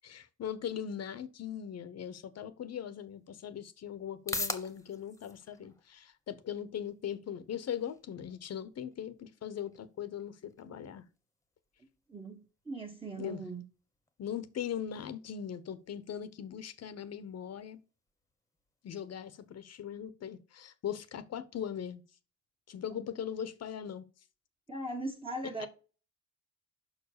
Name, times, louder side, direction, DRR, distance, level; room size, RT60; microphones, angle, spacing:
voice 1, 0.0-11.0 13.2-13.4 14.2-17.8 18.8-22.0 22.7-24.0 25.6-25.7, left 9 dB, 55° left, 0.9 m, -40 dB
sound 1, 2.8-19.8, left 2 dB, 10° left, 1.2 m, -48 dB
voice 2, 12.1-13.6 22.9-23.0 24.7-25.7, right 2 dB, 20° right, 1.5 m, -39 dB
5.9 x 4.8 x 6.6 m
cardioid pair, 90°, 30 cm